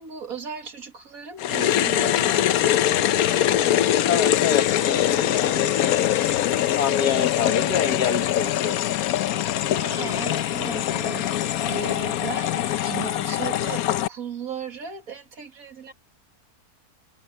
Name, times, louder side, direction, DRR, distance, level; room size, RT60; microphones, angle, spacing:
voice 1, 0.0-3.7 9.7-15.9, right 6 dB, 60° right, 2.5 m, -37 dB
sound 1, 1.4-14.1, left 12 dB, 70° left, 1.1 m, -23 dB
voice 2, 4.1-6.3 6.8-8.8, left 7 dB, 90° left, 2.0 m, -27 dB
sound 2, 5.3-7.4 7.7-7.9 9.0-9.1 9.9-13.3, left 4 dB, 50° left, 6.2 m, -44 dB
omnidirectional pair, 1.7 m